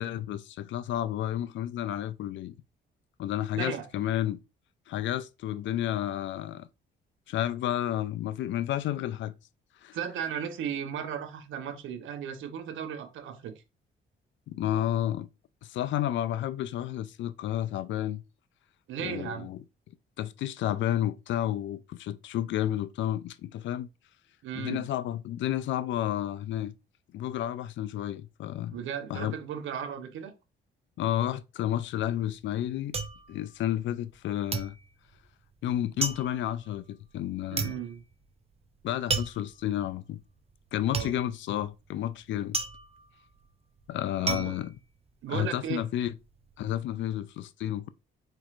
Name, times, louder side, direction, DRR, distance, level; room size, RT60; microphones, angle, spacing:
voice 1, 0.0-2.5 3.2-4.4 4.9-6.7 7.3-9.3 9.8-10.0 14.5-15.3 15.6-18.2 19.0-19.6 20.2-23.9 24.6-26.7 27.1-28.8 29.1-29.3 31.0-32.9 33.3-34.8 35.6-37.8 38.8-40.2 40.7-42.6 43.9-44.7 45.3-46.1 46.6-47.9, left 12 dB, 70° left, 0.4 m, -31 dB
voice 2, 9.9-13.5 18.9-19.5 24.4-24.9 28.7-30.3 37.5-38.0 40.9-41.1 44.2-44.6 45.2-45.8, right 8 dB, 80° right, 0.9 m, -35 dB
sound 1, 31.8-34.2 34.5-45.6 46.0-46.5, right 4 dB, 30° right, 0.7 m, -35 dB
4.6 x 4.4 x 2.5 m
cardioid pair, 90°, 20 cm